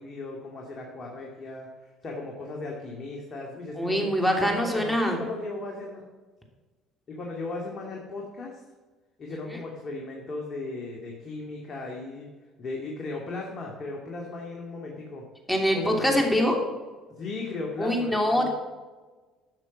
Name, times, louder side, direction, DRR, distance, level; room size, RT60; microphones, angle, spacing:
voice 1, 0.0-4.1 4.4-6.0 7.1-8.6 9.2-12.3 12.6-15.3 15.7-16.2 17.2-18.5, left 3 dB, 45° left, -1 dB, 2.3 m, -36 dB
voice 2, 3.8-5.2 9.5-9.6 15.5-16.5 17.8-18.5, equal, 5° left, 1 dB, 3.0 m, -24 dB
12.0 x 6.7 x 6.1 m, 1.3 s
hypercardioid pair, 65°, 0 cm